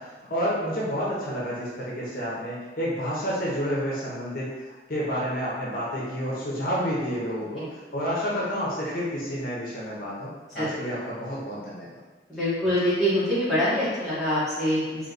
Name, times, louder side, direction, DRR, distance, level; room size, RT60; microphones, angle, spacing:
voice 1, 0.0-11.9, equal, 50° left, -6 dB, 0.8 m, -30 dB
voice 2, 12.3-15.1, equal, ahead, -13 dB, 1.3 m, -25 dB
3.1 x 2.9 x 4.0 m, 1.3 s
head